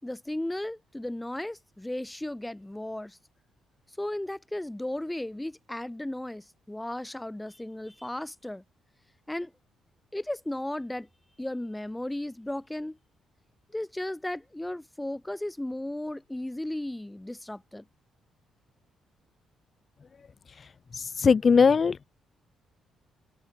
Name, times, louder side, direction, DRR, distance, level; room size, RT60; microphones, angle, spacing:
voice 1, 0.0-3.2 4.0-8.6 9.3-9.5 10.1-11.1 11.4-13.0 13.7-17.8, left 1 dB, 10° left, 4.0 m, -35 dB
voice 2, 21.0-22.0, left 5 dB, 40° left, 0.5 m, -20 dB
cardioid pair, 90°, 0 cm